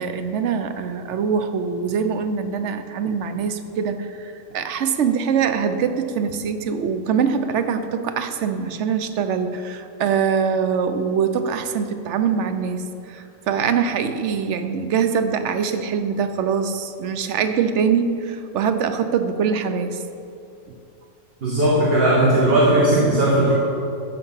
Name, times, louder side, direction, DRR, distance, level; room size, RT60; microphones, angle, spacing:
voice 1, 0.0-20.0, right 6 dB, 60° right, 9 dB, 1.0 m, -23 dB
voice 2, 21.4-23.5, right 1 dB, 40° right, -6 dB, 2.1 m, -17 dB
14.5 x 6.6 x 5.7 m, 2.6 s
omnidirectional pair, 1.5 m